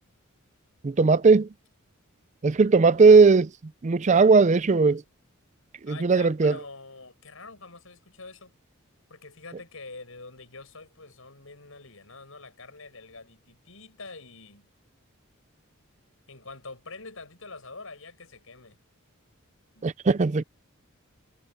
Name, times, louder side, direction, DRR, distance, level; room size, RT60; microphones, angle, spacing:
voice 1, 0.8-1.5 2.4-3.5 3.8-5.0 5.9-6.5 19.8-20.4, right 4 dB, 35° right, 0.4 m, -18 dB
voice 2, 5.9-8.5 9.1-14.7 16.3-18.8 19.7-19.8, left 3 dB, 70° left, 7.7 m, -45 dB
head